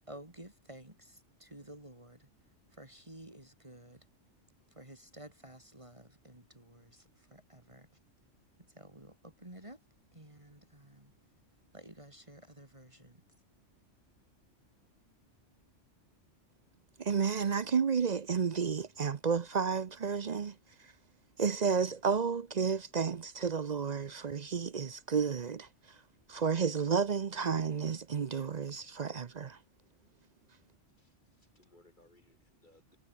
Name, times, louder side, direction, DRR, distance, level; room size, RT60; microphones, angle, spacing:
voice 1, 0.1-2.3 2.7-4.1 4.7-7.9 8.7-9.8 10.1-11.1 11.7-13.2, right 1 dB, 25° right, 3.6 m, -52 dB
voice 2, 17.0-21.0 21.4-26.0 26.3-29.6, right 6 dB, 45° right, 0.6 m, -32 dB
voice 3, 30.9-33.0, left 1 dB, 40° left, 5.9 m, -65 dB
omnidirectional pair, 1.3 m